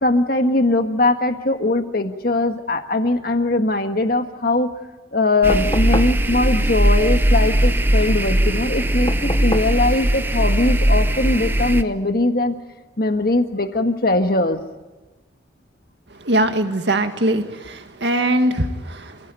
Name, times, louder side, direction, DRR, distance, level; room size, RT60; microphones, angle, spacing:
voice 1, 0.0-4.7 5.1-12.5 13.0-14.6, left 2 dB, 50° left, 7 dB, 1.6 m, -20 dB
sound 1, 5.4-11.8, right 1 dB, 10° right, 0.7 m, -19 dB
sound 2, 5.5-6.2 9.1-9.8 11.4-11.5, left 1 dB, 25° left, 1.0 m, -28 dB
voice 2, 16.2-19.2, right 1 dB, 65° right, 6 dB, 2.0 m, -21 dB
28.0 x 17.5 x 9.2 m, 1.2 s
head